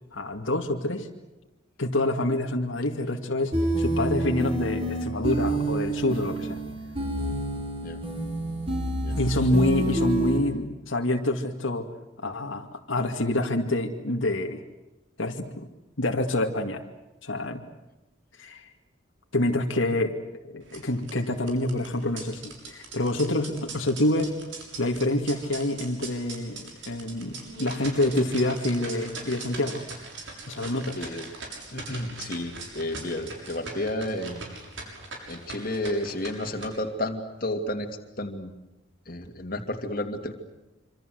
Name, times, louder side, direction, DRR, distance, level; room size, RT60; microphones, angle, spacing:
voice 1, 0.1-1.1 1.8-3.5 3.8-6.6 9.1-11.9 12.2-14.6 15.2-15.7 16.0-16.8 17.2-17.6 18.4-18.7 19.3-20.2 20.4-24.4 24.8-29.8 30.5-31.1, left 1 dB, 75° left, 3 dB, 2.3 m, -27 dB
sound 1, 3.5-10.4, right 1 dB, 30° right, 6.0 m, -28 dB
sound 2, 20.6-36.6, right 3 dB, 65° right, 6.9 m, -41 dB
voice 2, 31.0-31.3 31.7-34.4 35.3-38.5 39.1-40.3, left 1 dB, 45° left, 4 dB, 2.7 m, -32 dB
26.5 x 26.5 x 7.9 m, 0.99 s
head